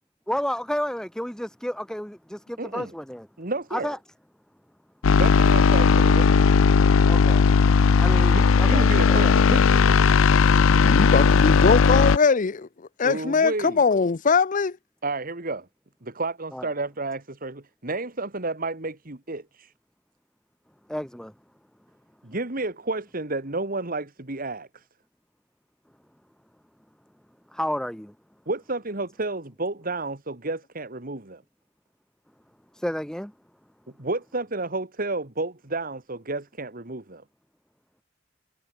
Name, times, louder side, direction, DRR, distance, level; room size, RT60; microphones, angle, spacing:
voice 1, 0.3-3.3 3.7-4.0 7.1-7.5 8.0-9.3 16.5-16.7 20.9-21.3 27.5-28.1 32.7-33.3, equal, 5° left, 1.0 m, -31 dB
voice 2, 2.6-2.9 3.4-4.0 5.1-6.3 8.3-10.2 13.0-13.8 15.0-15.7 16.0-19.7 22.2-24.9 28.5-31.4 34.0-37.2, right 2 dB, 45° right, 2.1 m, -31 dB
sound 1, 5.0-12.2, left 5 dB, 85° left, 0.5 m, -17 dB
voice 3, 10.8-12.7 13.0-14.7, left 5 dB, 40° left, 0.5 m, -21 dB
head